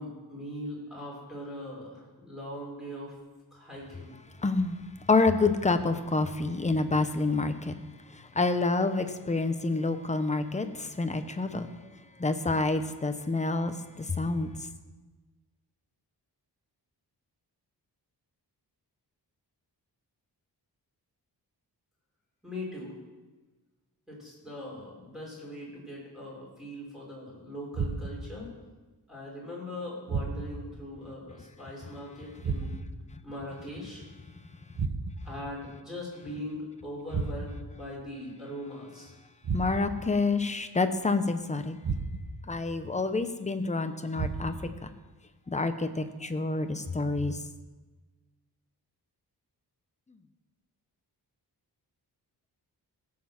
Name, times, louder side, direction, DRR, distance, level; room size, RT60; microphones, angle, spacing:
voice 1, 0.0-3.2 3.5-4.2 22.4-22.9 24.1-28.5 29.1-32.8 33.2-34.0 35.2-39.2, left 1 dB, ahead, -5 dB, 5.3 m, -41 dB
voice 2, 4.4-4.8 5.1-7.7 8.1-11.7 12.2-14.5 39.5-41.8 42.5-44.5 44.8-44.9 45.5-47.4, left 3 dB, 20° left, 8 dB, 0.7 m, -28 dB
sound 1, 27.7-28.4 30.1-30.7 32.4-33.1 34.7-35.4 37.1-37.7 39.4-40.1 41.8-42.5 44.1-44.8, right 4 dB, 70° right, 1.3 m, -33 dB
16.5 x 7.7 x 5.9 m, 1.2 s
wide cardioid pair, 165°, 40 cm